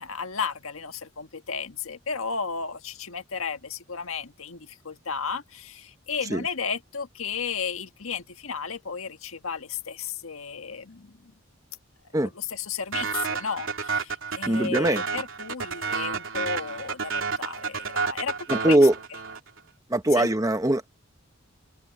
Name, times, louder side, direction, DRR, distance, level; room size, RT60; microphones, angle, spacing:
voice 1, 0.0-11.3 12.3-18.8 20.1-20.3, left 6 dB, 85° left, 1.7 m, -34 dB
sound 1, 12.9-19.6, right 5 dB, 70° right, 3.0 m, -30 dB
voice 2, 14.4-15.0 18.5-18.9 19.9-20.9, right 1 dB, 15° right, 1.1 m, -21 dB
open air
head